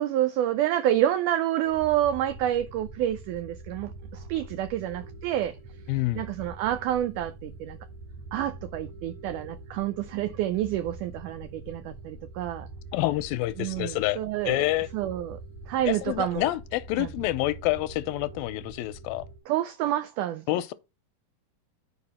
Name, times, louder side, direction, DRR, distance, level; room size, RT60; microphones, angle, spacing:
voice 1, 0.0-5.6 6.2-7.8 8.3-12.7 13.6-14.7 14.9-15.4 15.7-16.5 17.0-17.1 19.5-20.4, right 12 dB, 90° right, 1.8 m, -28 dB
sound 1, 1.6-19.4, right 2 dB, 55° right, 5.2 m, -44 dB
voice 2, 5.9-6.2 12.9-14.2 14.5-14.9 15.9-19.3 20.5-20.7, left 17 dB, 85° left, 2.4 m, -27 dB
9.4 x 5.0 x 4.2 m
omnidirectional pair, 4.2 m